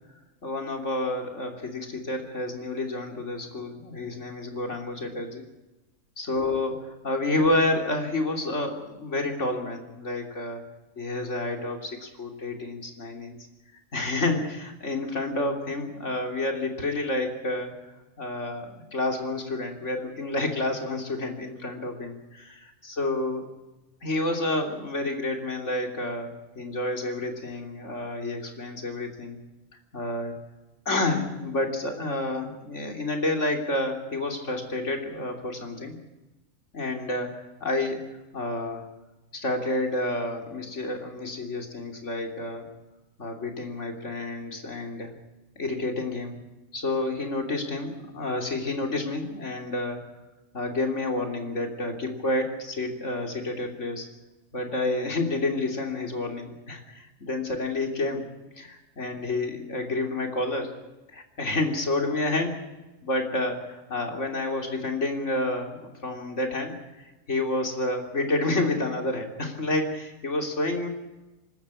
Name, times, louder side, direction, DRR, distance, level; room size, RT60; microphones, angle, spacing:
voice 1, 0.4-5.4 6.2-10.6 11.0-13.4 13.9-17.7 18.2-23.5 24.0-29.4 29.9-30.3 30.9-36.0 36.7-38.8 39.3-42.7 43.2-45.1 45.6-46.4 46.7-50.1 50.5-54.1 54.5-58.3 58.6-60.7 61.1-62.6 63.0-70.9, left 2 dB, 60° left, 3 dB, 3.4 m, -29 dB
26.0 x 13.0 x 8.5 m, 1.1 s
omnidirectional pair, 1.4 m